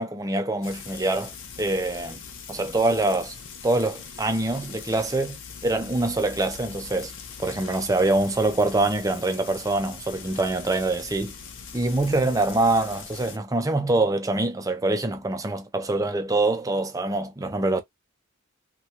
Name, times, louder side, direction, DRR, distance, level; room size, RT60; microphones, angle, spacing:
voice 1, 0.0-1.3 1.6-2.2 2.5-3.3 3.6-7.1 7.4-11.3 11.7-17.8, right 2 dB, 15° right, 0.5 m, -24 dB
Frying (food), 0.6-13.4, left 6 dB, 60° left, 0.7 m, -41 dB
3.1 x 2.3 x 2.9 m
head